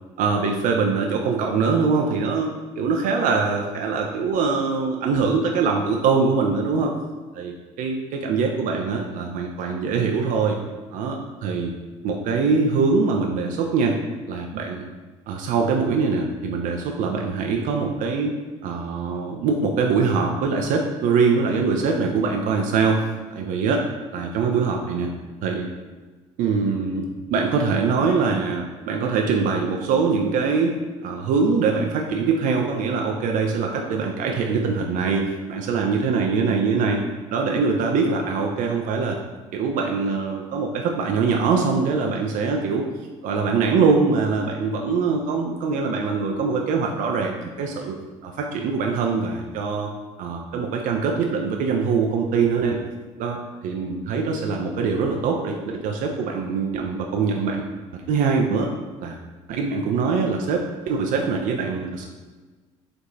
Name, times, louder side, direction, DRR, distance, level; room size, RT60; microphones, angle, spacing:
voice 1, 0.2-6.9 7.3-10.6 10.9-11.7 12.0-14.0 14.3-14.8 15.3-18.3 18.6-23.0 23.3-23.8 24.1-25.1 25.4-25.7 26.4-27.0 27.3-30.8 31.0-35.2 35.5-37.0 37.3-39.2 39.5-42.8 43.2-47.9 48.2-49.9 50.2-52.8 53.2-57.6 58.1-58.7 59.0-59.2 59.5-62.1, right 5 dB, 55° right, 1 dB, 0.5 m, -23 dB
4.5 x 2.6 x 3.9 m, 1.3 s
hypercardioid pair, 60°, 16 cm